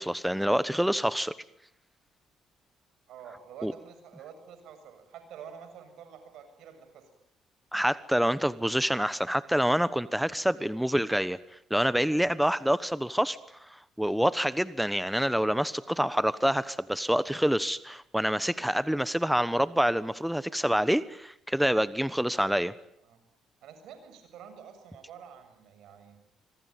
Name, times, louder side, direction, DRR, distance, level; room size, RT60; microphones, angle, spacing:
voice 1, 0.0-1.3 3.6-3.7 7.7-11.4 11.7-22.7, equal, 5° right, 15 dB, 1.1 m, -27 dB
voice 2, 3.1-7.0 18.6-18.8 23.0-23.2 23.6-26.2, right 7 dB, 75° right, 8 dB, 7.5 m, -48 dB
25.5 x 24.0 x 9.3 m, 0.74 s
supercardioid pair, 65°, 0 cm